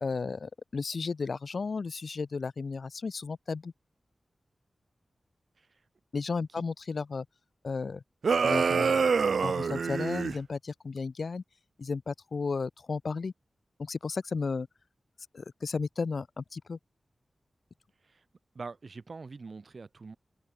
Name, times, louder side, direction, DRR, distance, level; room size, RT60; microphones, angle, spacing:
voice 1, 0.0-3.7 6.1-7.3 7.6-8.0 8.4-9.1 9.4-11.4 11.8-13.3 13.8-14.7 15.3-16.8, left 4 dB, 65° left, 0.4 m, -34 dB
sound 1, 8.2-10.4, right 5 dB, 80° right, 0.3 m, -26 dB
voice 2, 18.5-20.2, right 4 dB, 55° right, 4.7 m, -44 dB
open air
wide cardioid pair, 85°, 0 cm